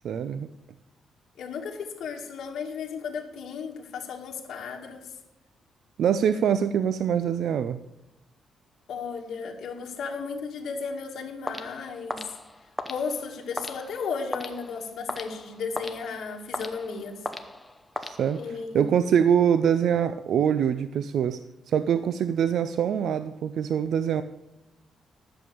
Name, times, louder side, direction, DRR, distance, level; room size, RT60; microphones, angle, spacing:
voice 1, 0.0-0.5 6.0-7.8 18.0-21.4 21.7-24.2, right 8 dB, 65° right, 12 dB, 0.4 m, -24 dB
voice 2, 1.4-5.1 8.9-12.4 12.9-17.2 18.3-18.9, left 5 dB, 65° left, 0 dB, 2.0 m, -34 dB
sound 1, 11.5-18.7, left 1 dB, 5° left, 0.8 m, -38 dB
11.0 x 7.0 x 6.9 m, 0.93 s
cardioid pair, 160°, 0 cm